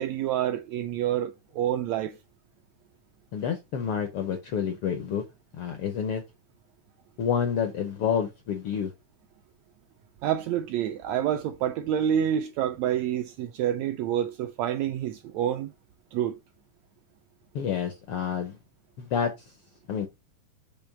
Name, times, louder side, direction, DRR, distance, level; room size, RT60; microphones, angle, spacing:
voice 1, 0.0-2.2 10.2-15.7 16.1-16.4, right 10 dB, 80° right, 1.6 m, -28 dB
voice 2, 3.3-5.2 5.5-6.2 7.2-8.9 17.5-18.6 19.0-19.3 19.9-20.1, left 7 dB, 75° left, 1.3 m, -28 dB
6.8 x 3.0 x 5.9 m
omnidirectional pair, 3.6 m